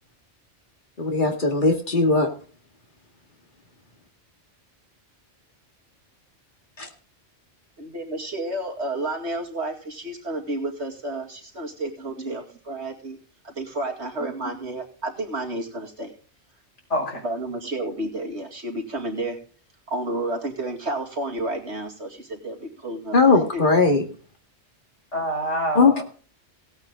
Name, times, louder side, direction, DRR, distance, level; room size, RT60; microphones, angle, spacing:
voice 1, 1.0-2.3 6.8-6.9 23.1-24.0 25.7-26.0, left 3 dB, 45° left, 3 dB, 2.3 m, -19 dB
voice 2, 7.8-13.2 13.4-16.1 17.2-19.4 19.9-23.6, right 1 dB, 65° right, 0 dB, 2.7 m, -31 dB
voice 3, 14.2-14.6 16.9-17.2 25.1-26.0, right 1 dB, 80° left, 0 dB, 5.6 m, -27 dB
17.0 x 8.9 x 3.8 m, 0.41 s
omnidirectional pair, 1.2 m